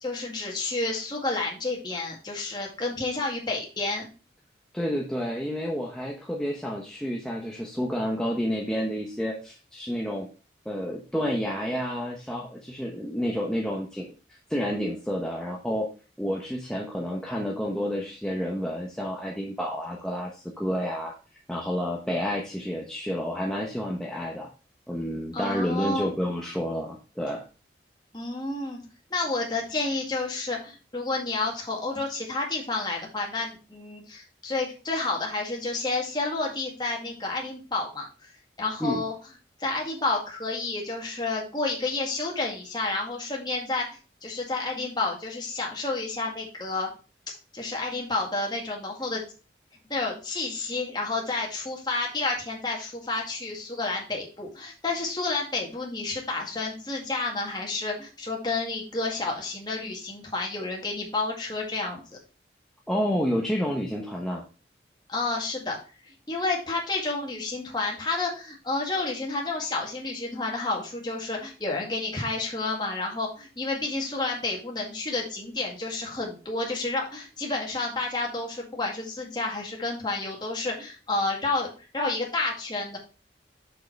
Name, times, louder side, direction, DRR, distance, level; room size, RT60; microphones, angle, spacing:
voice 1, 0.0-4.1 25.3-26.1 28.1-28.9 29.1-38.3 38.6-39.1 39.6-46.9 47.3-49.3 49.9-62.0 65.1-65.8 66.1-83.0, left 3 dB, 25° left, -1 dB, 2.0 m, -30 dB
voice 2, 4.7-10.3 10.6-15.9 16.2-21.1 21.5-24.5 24.9-27.4 38.8-39.0 62.9-64.4, equal, 5° left, -2 dB, 0.9 m, -30 dB
6.7 x 5.5 x 4.5 m, 0.34 s
head